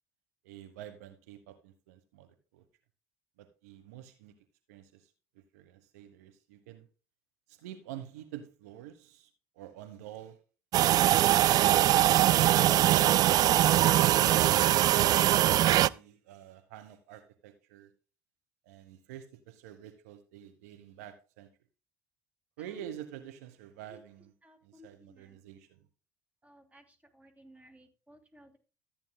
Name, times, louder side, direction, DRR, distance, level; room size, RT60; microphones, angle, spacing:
voice 1, 0.4-2.6 3.4-4.3 4.7-6.9 7.5-9.3 9.5-10.4 12.8-17.9 18.6-21.5 22.6-24.3 24.6-25.9, right 11 dB, 75° right, 1.1 m, -47 dB
sound 1, 10.7-15.9, right 13 dB, 50° right, 0.4 m, -22 dB
voice 2, 24.5-25.2 26.4-26.8 27.1-28.6, equal, 15° right, 2.7 m, -58 dB
14.0 x 8.8 x 2.2 m
hypercardioid pair, 65°, 9 cm